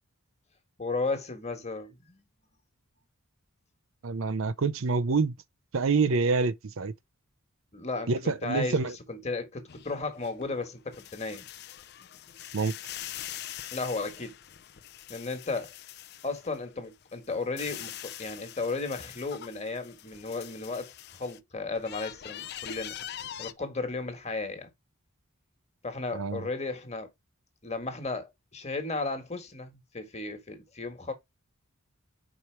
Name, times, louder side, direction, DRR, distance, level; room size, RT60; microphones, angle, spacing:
voice 1, 0.8-2.2 7.7-11.5 13.7-14.3 15.1-15.7 16.2-23.0 23.4-24.7 25.8-27.1 27.6-31.1, left 3 dB, 30° left, 1.5 m, -34 dB
voice 2, 4.0-5.3 5.7-6.9 8.1-9.0 12.5-12.7 26.1-26.5, right 4 dB, 70° right, 0.5 m, -27 dB
sound 1, 9.7-16.6 17.0-21.4 21.7-23.5, left 12 dB, 50° left, 0.5 m, -43 dB
5.0 x 4.3 x 4.5 m
head